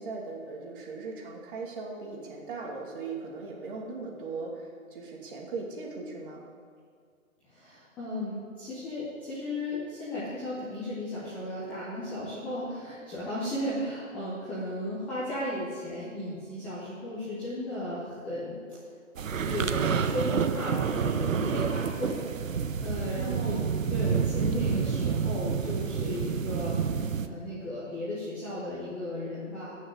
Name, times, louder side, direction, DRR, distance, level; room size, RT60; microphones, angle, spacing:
voice 1, 0.0-6.4 23.2-23.6, right 4 dB, 40° right, -1 dB, 2.7 m, -38 dB
voice 2, 7.5-18.5 19.3-22.2 22.8-23.6 23.9-29.7, left 1 dB, 5° left, -10 dB, 0.6 m, -35 dB
sound 1, 19.2-27.3, right 7 dB, 70° right, 1.0 m, -29 dB
15.5 x 6.4 x 8.2 m, 2.1 s
hypercardioid pair, 150°, 41 cm